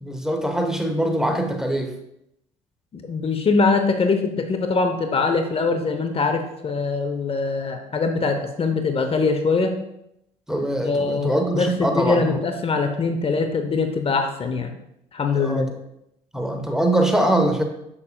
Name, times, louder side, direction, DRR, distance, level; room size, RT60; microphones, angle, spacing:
voice 1, 0.0-1.9 10.5-12.4 15.4-15.8 16.3-17.6, right 1 dB, 5° right, 4 dB, 1.0 m, -23 dB
voice 2, 2.9-9.7 10.8-14.7 15.1-15.7, left 4 dB, 35° left, 6 dB, 0.8 m, -23 dB
7.1 x 6.7 x 2.3 m, 0.80 s
hypercardioid pair, 65°, 16 cm